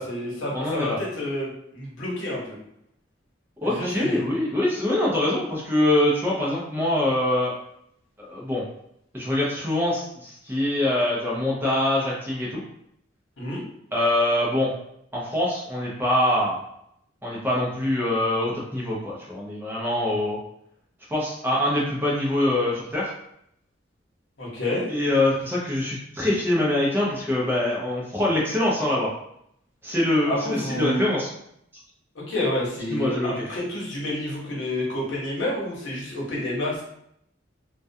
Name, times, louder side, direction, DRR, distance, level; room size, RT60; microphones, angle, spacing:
voice 1, 0.0-2.5 3.6-4.2 13.4-13.6 24.4-24.9 30.3-31.1 32.3-36.8, left 1 dB, 80° left, -5 dB, 0.9 m, -29 dB
voice 2, 0.5-1.0 3.6-7.5 8.2-8.6 9.1-12.6 13.9-14.7 15.1-16.6 17.2-20.4 21.1-23.1 24.9-29.1 29.8-31.3 32.9-33.5, left 1 dB, 10° right, -5 dB, 0.5 m, -24 dB
2.3 x 2.2 x 2.6 m, 0.73 s
head